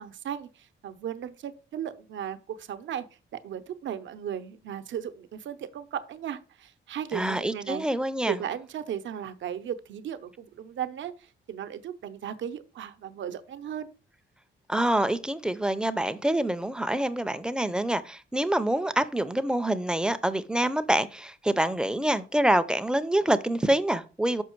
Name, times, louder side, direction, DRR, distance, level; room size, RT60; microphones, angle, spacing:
voice 1, 0.0-3.1 3.4-7.9 8.3-13.9, right 9 dB, 70° right, 0.7 m, -36 dB
voice 2, 7.1-8.4 14.7-24.4, right 1 dB, 5° right, 0.4 m, -26 dB
6.2 x 5.5 x 4.5 m
cardioid pair, 145°, 20 cm